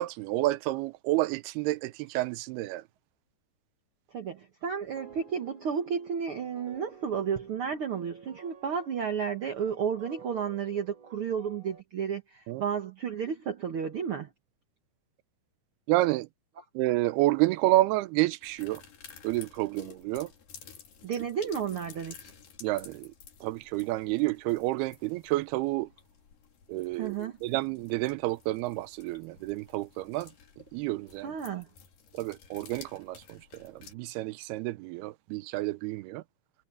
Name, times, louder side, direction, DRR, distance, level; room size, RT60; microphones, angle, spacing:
voice 1, 0.0-2.8 12.5-12.6 15.9-16.3 16.8-18.8 19.2-20.3 22.6-23.1 23.4-25.9 26.7-30.3 30.7-31.3 32.1-36.2, right 18 dB, 90° right, 2.7 m, -29 dB
voice 2, 4.1-14.3 21.0-22.3 27.0-27.4 31.2-31.7, right 7 dB, 60° right, 1.4 m, -32 dB
sound 1, 5.0-11.8, right 5 dB, 20° right, 4.6 m, -53 dB
sound 2, 18.4-33.9, left 7 dB, 65° left, 4.4 m, -53 dB
omnidirectional pair, 4.4 m